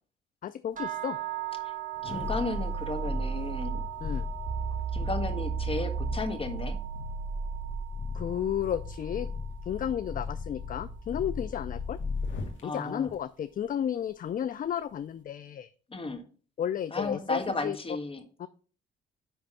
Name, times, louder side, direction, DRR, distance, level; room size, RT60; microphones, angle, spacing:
voice 1, 0.4-1.2 4.0-4.3 8.1-9.3 9.6-12.0 12.6-15.7 16.6-17.8 18.4-18.5, left 9 dB, 45° left, 14 dB, 0.4 m, -32 dB
sound 1, 0.8-10.8, right 15 dB, 40° right, 1.7 m, -41 dB
sound 2, 1.9-12.6 13.0-13.2, left 4 dB, 75° left, 1.8 m, -37 dB
voice 2, 2.0-3.8 4.9-6.8 12.6-13.1 15.9-16.2 16.9-18.2, left 3 dB, 30° left, 7 dB, 1.6 m, -34 dB
sound 3, 2.5-3.9 4.5-7.9, right 8 dB, 60° right, 0.6 m, -34 dB
10.0 x 3.4 x 5.6 m, 0.39 s
cardioid pair, 90°, 20 cm